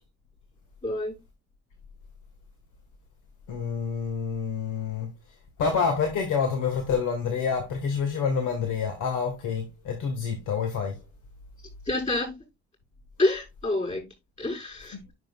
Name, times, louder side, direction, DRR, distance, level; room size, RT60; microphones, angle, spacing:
voice 1, 0.8-1.2 11.9-12.4 13.2-14.1 14.4-15.0, left 2 dB, 25° left, 5.7 m, -27 dB
voice 2, 3.5-5.1 5.6-11.0, left 6 dB, 85° left, 1.7 m, -27 dB
10.0 x 6.1 x 2.4 m
cardioid pair, 90°, 30 cm